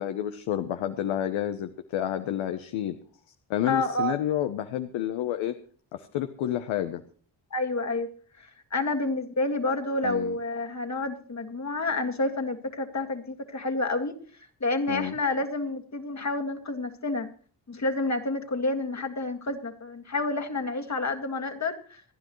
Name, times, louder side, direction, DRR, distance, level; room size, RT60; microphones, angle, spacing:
voice 1, 0.0-3.0 3.5-5.5 5.9-7.0 10.0-10.4 14.9-15.1, left 11 dB, 85° left, 8 dB, 0.9 m, -29 dB
voice 2, 3.6-4.1 7.5-8.1 8.4-14.2 14.6-17.3 17.7-22.0, left 2 dB, 35° left, 6 dB, 1.9 m, -29 dB
27.0 x 10.0 x 3.1 m, 0.42 s
supercardioid pair, 60°, 46 cm